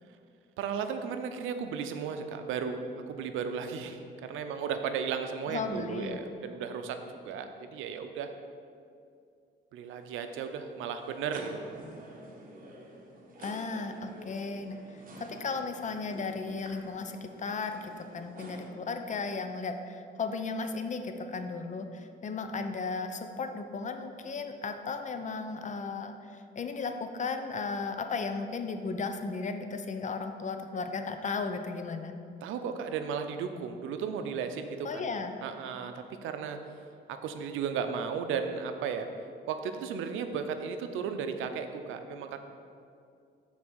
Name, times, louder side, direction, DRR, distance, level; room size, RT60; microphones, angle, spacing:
voice 1, 0.6-8.3 9.7-11.8 32.4-35.1 35.4-36.6 37.1-39.1 39.5-42.4, right 6 dB, 90° right, 7 dB, 0.5 m, -35 dB
voice 2, 5.5-6.2 13.4-14.8 15.2-32.1 34.8-35.3, left 4 dB, 40° left, 7 dB, 0.6 m, -35 dB
sound 1, 9.8-18.7, right 1 dB, 45° right, 1.2 m, -49 dB
6.1 x 4.0 x 6.2 m, 2.4 s
cardioid pair, 90°, 20 cm